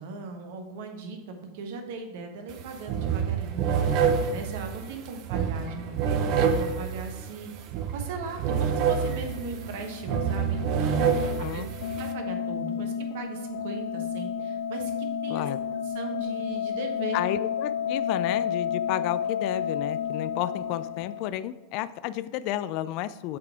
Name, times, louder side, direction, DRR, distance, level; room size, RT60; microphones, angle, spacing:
voice 1, 0.0-15.5 15.8-17.2, right 3 dB, 65° right, 4 dB, 1.2 m, -39 dB
sound 1, 2.5-2.6 2.9-12.1, right 7 dB, 50° right, 0.7 m, -27 dB
sound 2, 9.3-21.3, left 7 dB, 75° left, 1.1 m, -31 dB
voice 2, 11.2-11.6 15.3-15.6 17.1-23.4, left 13 dB, 55° left, 15 dB, 0.3 m, -32 dB
7.6 x 4.0 x 4.5 m, 1.1 s
hypercardioid pair, 105°, 0 cm